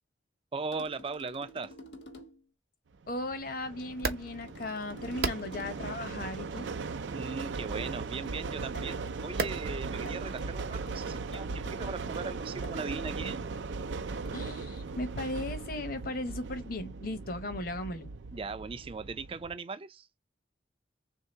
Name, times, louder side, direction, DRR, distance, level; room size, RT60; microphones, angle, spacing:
voice 1, 0.5-1.7 7.1-13.5 18.3-20.1, right 4 dB, 30° right, 0.4 m, -39 dB
sound 1, 0.7-2.5 3.9-5.9 7.8-12.9 14.2-14.6 15.6-15.9, equal, 75° left, 1.1 m, -51 dB
voice 2, 3.1-6.7 14.3-18.1, left 1 dB, 50° left, 0.9 m, -37 dB
sound 2, 3.1-19.6, right 4 dB, 85° right, 0.5 m, -38 dB
sound 3, 3.9-11.7, right 4 dB, 55° right, 0.7 m, -41 dB
3.6 x 2.8 x 4.4 m
head